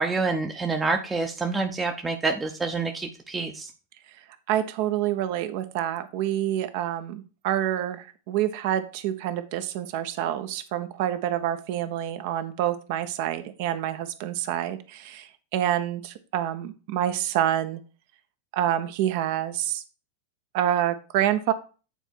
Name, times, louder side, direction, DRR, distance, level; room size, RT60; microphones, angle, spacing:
voice 1, 0.0-3.7, right 3 dB, 15° right, 4 dB, 0.8 m, -27 dB
voice 2, 4.5-17.8 18.5-19.8 20.5-21.5, right 11 dB, 50° right, 11 dB, 0.9 m, -27 dB
9.1 x 4.4 x 4.5 m, 0.35 s
figure-of-eight pair, 90°, 0 cm